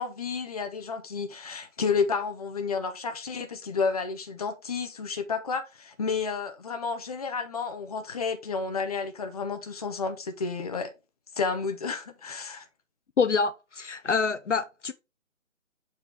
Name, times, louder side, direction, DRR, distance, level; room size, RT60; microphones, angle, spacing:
voice 1, 0.0-10.9 11.4-12.6, left 5 dB, 30° left, 0.8 m, -31 dB
voice 2, 13.2-14.9, left 5 dB, 65° left, 0.7 m, -26 dB
7.0 x 4.4 x 3.4 m
figure-of-eight pair, 145°, 40 cm